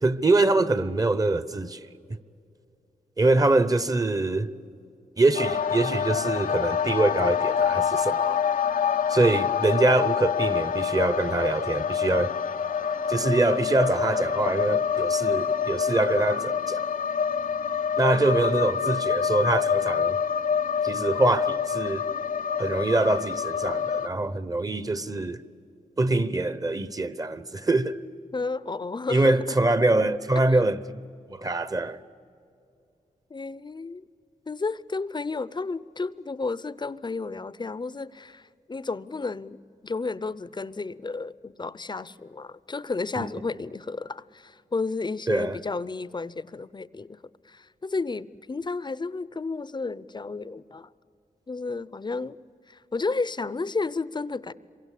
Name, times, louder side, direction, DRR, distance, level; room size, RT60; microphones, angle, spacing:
voice 1, 0.0-1.8 3.2-4.5 5.2-8.4 9.1-12.3 13.1-16.9 18.0-20.2 20.8-22.1 22.6-25.4 26.0-27.9 29.1-31.0 31.3-32.0 43.2-43.3 45.3-45.6, right 2 dB, 25° right, 1.0 m, -24 dB
sound 1, 5.3-24.1, left 7 dB, 80° left, 0.6 m, -26 dB
voice 2, 28.3-29.6 33.3-34.0 34.5-47.2 47.4-50.9 51.5-52.4 52.7-54.5, left 3 dB, 30° left, 0.6 m, -32 dB
26.5 x 23.5 x 8.4 m
cardioid pair, 75°, 14 cm